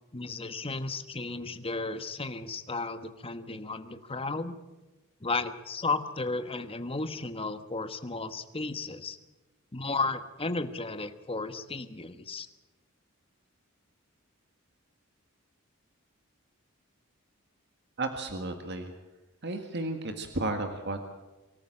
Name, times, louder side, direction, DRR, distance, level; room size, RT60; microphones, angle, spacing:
voice 1, 0.1-4.5 5.2-9.2 9.7-12.5, left 3 dB, 25° left, 9 dB, 1.2 m, -34 dB
voice 2, 18.0-18.9 19.4-21.0, right 2 dB, 50° right, 6 dB, 1.7 m, -33 dB
24.5 x 14.0 x 8.8 m, 1.1 s
head